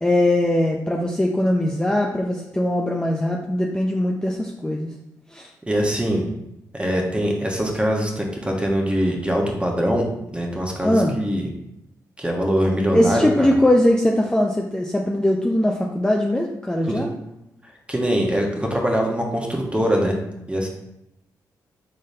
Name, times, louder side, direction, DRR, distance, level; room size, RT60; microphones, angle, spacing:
voice 1, 0.0-4.9 5.3-5.5 10.8-11.2 12.9-17.1, left 1 dB, 10° left, 0 dB, 0.5 m, -21 dB
voice 2, 5.7-6.2 6.7-10.1 10.3-11.5 12.2-13.5 16.9-17.0 17.9-20.2 20.5-20.7, equal, 15° right, 0 dB, 1.2 m, -22 dB
5.0 x 3.8 x 2.8 m, 0.84 s
supercardioid pair, 50°, 7 cm